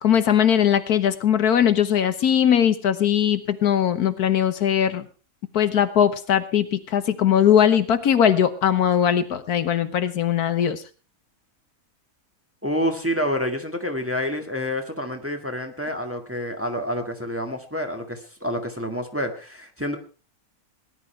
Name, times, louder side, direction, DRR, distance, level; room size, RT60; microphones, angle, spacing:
voice 1, 0.0-5.0 5.5-10.8, left 9 dB, 75° left, 11 dB, 1.5 m, -20 dB
voice 2, 12.6-20.0, equal, 10° right, 3 dB, 1.8 m, -28 dB
18.5 x 11.0 x 4.5 m, 0.36 s
omnidirectional pair, 1.6 m